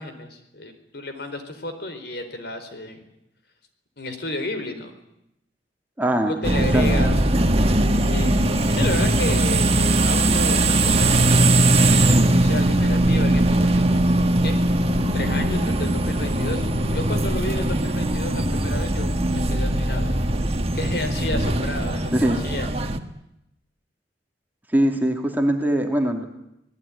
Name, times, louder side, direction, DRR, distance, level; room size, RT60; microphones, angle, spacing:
voice 1, 0.0-3.0 4.0-4.9 6.3-7.2 8.0-14.6 15.1-16.7 16.9-20.2 20.7-22.7, left 2 dB, 65° left, 8 dB, 4.4 m, -32 dB
voice 2, 6.0-7.1 22.1-22.4 24.7-26.2, right 1 dB, 10° right, 3 dB, 2.8 m, -22 dB
sound 1, 6.4-23.0, right 1 dB, 35° right, 1.6 m, -20 dB
26.0 x 18.5 x 10.0 m, 0.84 s
head